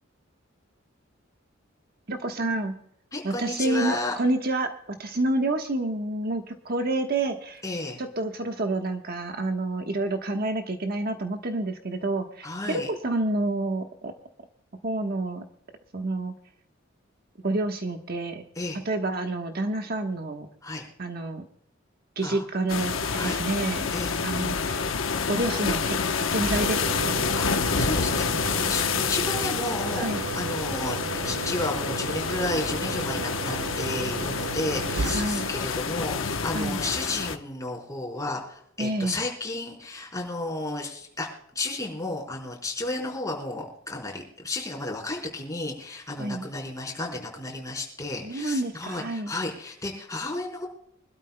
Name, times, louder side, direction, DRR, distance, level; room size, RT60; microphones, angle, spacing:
voice 1, 2.1-2.8 3.2-7.6 8.0-14.1 14.8-15.4 15.9-16.3 17.4-18.4 18.8-20.5 21.0-21.4 22.2-23.9 24.2-24.8 25.3-27.2 30.0-30.2 35.1-35.5 36.5-36.8 38.8-39.2 46.2-46.5 48.2-49.3, right 2 dB, 50° right, 5 dB, 1.2 m, -28 dB
voice 2, 3.1-4.1 7.6-8.0 12.4-12.9 18.6-18.8 20.6-20.9 22.2-22.4 23.2-23.4 23.9-24.5 27.4-41.3 41.5-50.7, left 2 dB, 15° left, -1 dB, 4.2 m, -33 dB
sound 1, 22.7-37.4, left 5 dB, 90° left, 0.9 m, -28 dB
Engine, 26.3-37.2, right 4 dB, 75° right, 0.6 m, -35 dB
25.0 x 12.5 x 2.2 m, 0.69 s
head